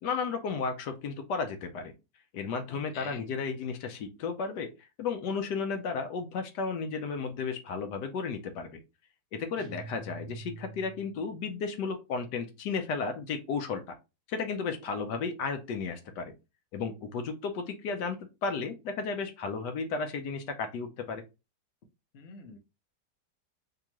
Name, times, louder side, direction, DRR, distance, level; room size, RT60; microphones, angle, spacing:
voice 1, 0.0-1.9 2.3-8.8 9.3-14.0 14.3-16.3 16.7-21.2, left 5 dB, 80° left, 1.3 m, -34 dB
voice 2, 2.7-3.2 22.1-22.6, left 5 dB, 55° left, 0.7 m, -46 dB
sound 1, 9.6-11.3, right 3 dB, 40° right, 0.9 m, -45 dB
3.6 x 2.9 x 2.9 m
omnidirectional pair, 1.8 m